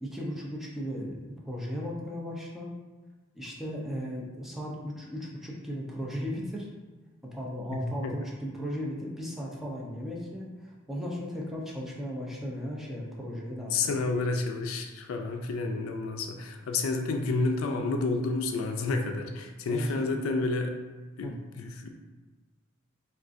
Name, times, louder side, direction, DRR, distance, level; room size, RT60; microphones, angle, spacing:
voice 1, 0.0-2.7 3.3-6.7 7.2-13.8 19.7-20.0 20.4-20.5 21.2-21.4, equal, ahead, -4 dB, 0.4 m, -36 dB
voice 2, 7.7-8.1 13.7-20.7 21.2-21.9, left 3 dB, 85° left, 5 dB, 0.3 m, -30 dB
3.7 x 2.3 x 2.5 m, 1.3 s
head